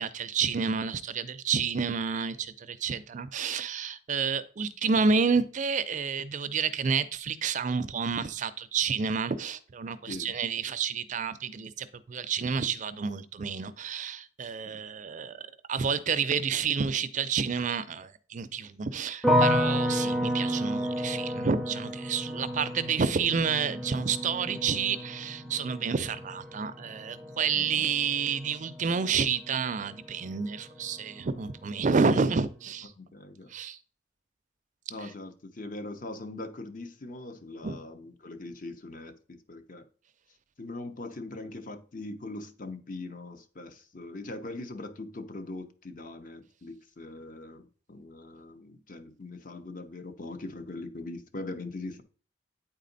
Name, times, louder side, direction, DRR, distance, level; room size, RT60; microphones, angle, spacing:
voice 1, 0.0-32.9 33.5-33.8 35.0-35.1 37.6-37.8, right 5 dB, 45° right, 0.4 m, -29 dB
sound 1, 19.2-30.3 30.6-31.3, equal, ahead, 0.6 m, -31 dB
voice 2, 27.5-27.9 33.0-33.5 34.9-39.9 40.6-52.0, left 2 dB, 45° left, 0.8 m, -41 dB
8.9 x 4.2 x 3.9 m
head